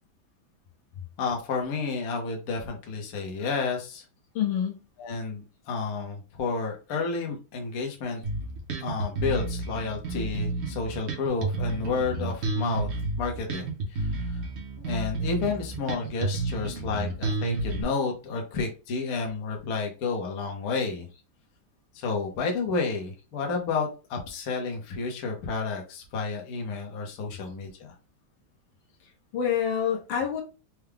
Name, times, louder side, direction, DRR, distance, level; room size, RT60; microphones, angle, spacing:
voice 1, 1.2-4.0 5.0-8.2 8.8-14.5 14.8-21.1 21.9-27.9, left 4 dB, 55° left, 1.2 m, -31 dB
voice 2, 4.3-4.8 29.3-30.4, left 8 dB, 70° left, 1.6 m, -26 dB
Bass guitar, 8.2-17.8, right 2 dB, 50° right, 0.8 m, -31 dB
4.6 x 2.3 x 3.4 m
omnidirectional pair, 2.2 m